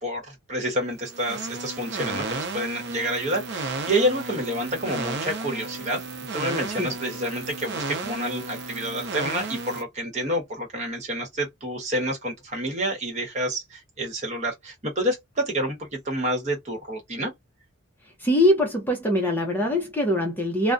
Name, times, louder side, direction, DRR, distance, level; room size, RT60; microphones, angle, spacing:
voice 1, 0.0-6.0 6.3-17.3, right 1 dB, 35° right, 1.1 m, -28 dB
sound 1, 0.9-9.8, right 3 dB, 55° right, 0.6 m, -33 dB
voice 2, 18.2-20.7, left 1 dB, 10° left, 0.6 m, -22 dB
2.3 x 2.1 x 2.5 m
head